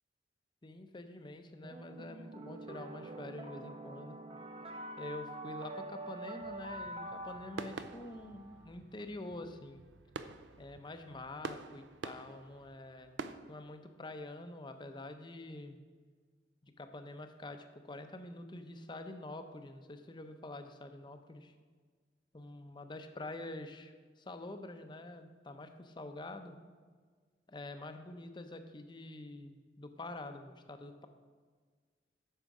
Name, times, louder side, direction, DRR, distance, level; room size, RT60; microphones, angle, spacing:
voice 1, 0.6-4.2 5.0-9.8 10.6-13.2 13.5-15.8 16.6-21.5 22.3-26.5 27.5-31.1, left 2 dB, 25° left, 7 dB, 0.6 m, -46 dB
sound 1, 1.6-8.7, right 1 dB, 30° right, 0.7 m, -46 dB
sound 2, 6.4-13.4, right 4 dB, 85° right, 0.5 m, -48 dB
9.0 x 6.5 x 4.8 m, 1.5 s
head